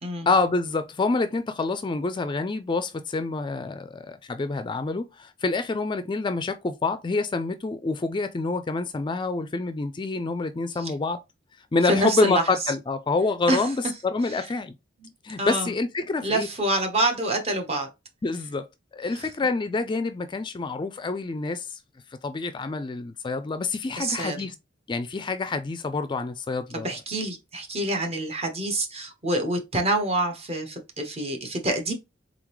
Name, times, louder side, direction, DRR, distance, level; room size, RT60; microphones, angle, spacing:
voice 1, 0.3-11.2 11.7-14.7 15.2-16.5 18.2-18.7 18.9-21.8 22.2-24.5 24.9-26.9, left 3 dB, 25° left, 0.3 m, -27 dB
voice 2, 11.9-12.4 13.5-13.6 15.0-15.1 15.4-15.7 16.2-17.9 19.1-19.2 24.0-24.5 26.7-31.9, right 1 dB, 35° right, 1.1 m, -26 dB
3.8 x 3.7 x 3.1 m
head